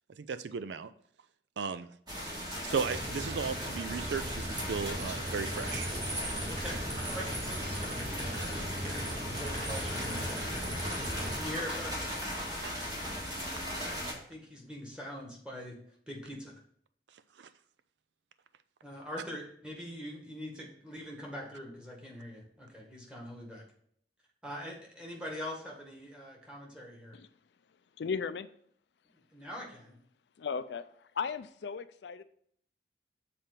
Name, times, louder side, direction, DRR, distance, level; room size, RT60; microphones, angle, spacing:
voice 1, 0.2-0.9 1.6-1.9 2.6-5.9 8.6-8.7 12.6-12.7 17.4-17.5, right 5 dB, 85° right, 13 dB, 0.4 m, -35 dB
sound 1, 2.1-14.1, equal, 25° right, 1.8 m, -38 dB
sound 2, 2.8-11.4, equal, 40° right, 2.3 m, -38 dB
voice 2, 6.5-9.1 9.4-10.5 11.3-12.1 14.3-15.8 16.1-16.5 18.8-23.6 24.4-27.1 29.3-30.0, equal, 5° right, -2 dB, 1.7 m, -43 dB
voice 3, 28.0-28.5 30.4-30.9 31.2-32.2, left 5 dB, 75° left, 13 dB, 0.4 m, -35 dB
7.4 x 4.3 x 5.2 m, 0.63 s
head